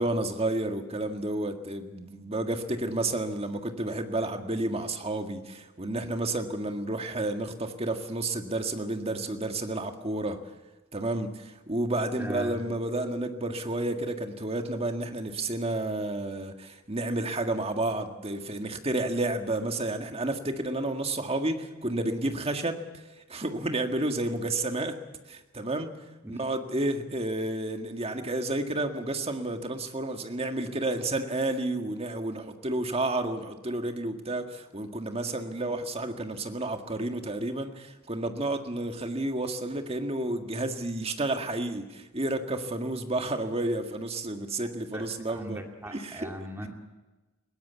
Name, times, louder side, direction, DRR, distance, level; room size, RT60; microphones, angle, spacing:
voice 1, 0.0-10.4 10.9-22.8 23.3-25.0 25.3-25.9 26.3-45.6 45.9-46.3, right 2 dB, 30° right, 6 dB, 1.8 m, -31 dB
voice 2, 12.2-12.7 26.2-26.4 44.9-46.7, right 1 dB, 10° right, 2 dB, 2.3 m, -39 dB
21.0 x 17.5 x 8.2 m, 1.1 s
head